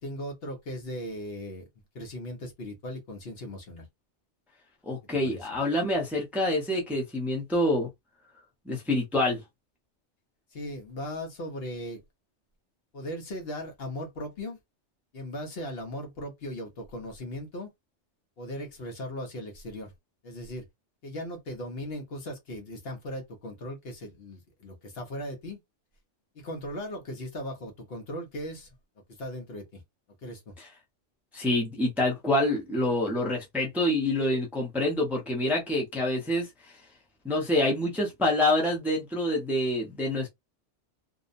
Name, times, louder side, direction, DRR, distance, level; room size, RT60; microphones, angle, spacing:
voice 1, 0.0-1.7 1.9-3.9 5.2-5.5 10.5-12.0 12.9-14.6 15.1-17.7 18.4-19.9 20.2-20.7 21.0-25.6 26.3-28.7 29.1-29.8 30.2-30.5, left 1 dB, 60° left, 1.0 m, -38 dB
voice 2, 4.9-7.9 8.7-9.4 31.3-36.5 37.2-40.3, left 1 dB, ahead, 0.6 m, -26 dB
2.7 x 2.1 x 2.5 m
omnidirectional pair, 1.2 m